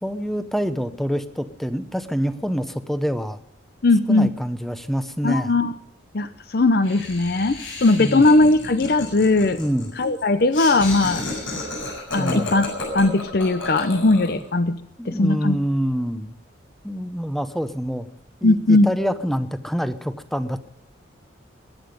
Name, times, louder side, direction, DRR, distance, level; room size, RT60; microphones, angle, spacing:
voice 1, 0.0-3.4 4.1-5.6 8.0-8.2 9.6-9.9 12.2-12.5 14.0-14.1 15.0-16.3 16.8-18.1 18.4-20.6, equal, ahead, 11 dB, 0.8 m, -26 dB
voice 2, 3.8-4.3 5.2-5.7 6.1-9.6 10.0-11.2 12.1-12.7 12.9-14.8 15.1-15.6 18.4-18.9, left 2 dB, 50° left, 12 dB, 0.6 m, -18 dB
Laughter, 6.8-14.4, left 2 dB, 85° left, 7.0 m, -32 dB
22.0 x 10.0 x 5.2 m, 0.72 s
head